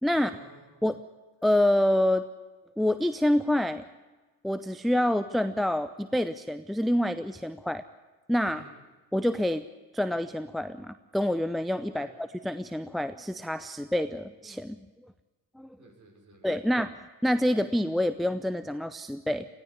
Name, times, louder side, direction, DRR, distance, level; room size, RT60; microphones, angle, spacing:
voice 1, 0.1-0.8 8.5-8.8 11.9-12.1 15.8-16.8, right 2 dB, 40° right, 2 dB, 5.9 m, -53 dB
voice 2, 1.4-2.2 2.8-3.9 4.4-7.8 8.3-8.6 9.1-9.7 9.9-12.1 12.4-14.8 15.6-15.8 16.4-16.9 17.2-19.5, left 1 dB, ahead, 12 dB, 0.6 m, -27 dB
19.5 x 14.0 x 9.6 m, 1.2 s
hypercardioid pair, 50°, 47 cm